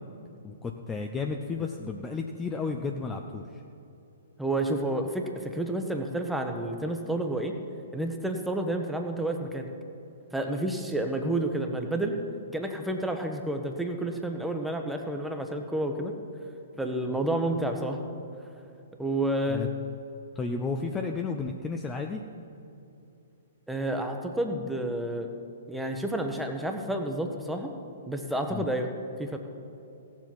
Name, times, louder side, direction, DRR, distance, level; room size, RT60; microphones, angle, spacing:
voice 1, 0.4-3.6 17.0-17.2 19.5-19.7 20.3-22.2 28.5-28.7, left 4 dB, 15° left, 3 dB, 0.6 m, -33 dB
voice 2, 4.4-7.5 7.9-9.7 10.3-12.2 12.5-16.1 16.8-18.0 19.0-19.6 23.7-25.3 25.7-27.7 28.1-28.9 29.2-29.4, right 1 dB, 5° right, 3 dB, 1.1 m, -30 dB
16.5 x 7.4 x 6.0 m, 2.8 s
figure-of-eight pair, 120°, 0 cm